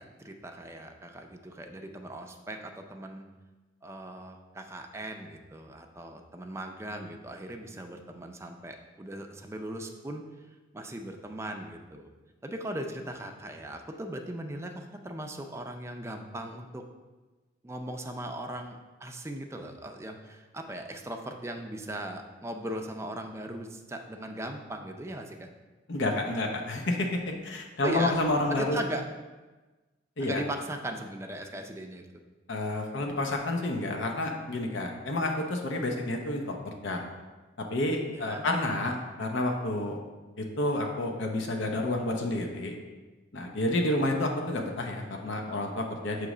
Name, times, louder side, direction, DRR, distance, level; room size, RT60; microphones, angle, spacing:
voice 1, 0.0-3.2 3.8-10.2 10.7-12.1 12.4-16.8 17.6-25.5 27.8-28.1 28.5-29.0 30.2-32.0 38.1-38.5, right 1 dB, 15° right, 4 dB, 0.4 m, -38 dB
voice 2, 25.9-28.8 30.2-30.4 32.5-36.6 36.8-37.0 37.7-40.0 40.4-42.7 43.3-46.3, left 1 dB, 70° left, 1 dB, 0.7 m, -29 dB
6.6 x 3.1 x 4.9 m, 1.2 s
head